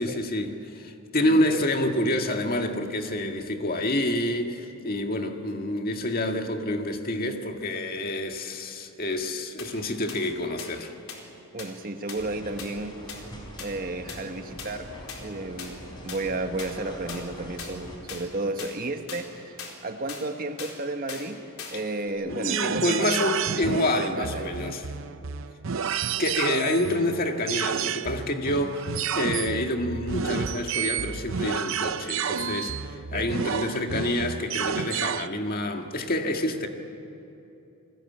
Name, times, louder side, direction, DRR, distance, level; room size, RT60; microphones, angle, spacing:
voice 1, 0.0-10.9 22.3-24.8 26.2-28.8 29.1-36.7, left 1 dB, 45° left, 4 dB, 1.9 m, -28 dB
voice 2, 1.2-1.6 11.5-13.0 13.6-21.4 21.7-23.3 23.6-24.8 33.1-33.4, right 2 dB, 40° right, 6 dB, 1.4 m, -33 dB
sound 1, 9.6-9.7 10.1-10.2 10.6-10.7 11.1-11.2 11.6-11.7 12.1-12.2 12.6-12.7 13.1-13.2 13.6-13.7 14.1-14.2 14.6-14.7 15.1-15.2 15.6-15.7 16.1-16.2 16.6-16.7 17.1-17.2 17.6-17.7 18.1-18.2 18.6-18.7 19.1-19.2 19.6-19.7 20.1-20.2 20.6-20.7 21.1-21.3 21.6-21.8 22.1-22.2, left 6 dB, 75° left, 4.2 m, -38 dB
sound 2, 12.2-18.0, equal, 20° left, 4.8 m, -43 dB
sound 3, 22.3-35.3, right 7 dB, 65° right, 0.6 m, -30 dB
28.0 x 20.0 x 8.6 m, 2.9 s
head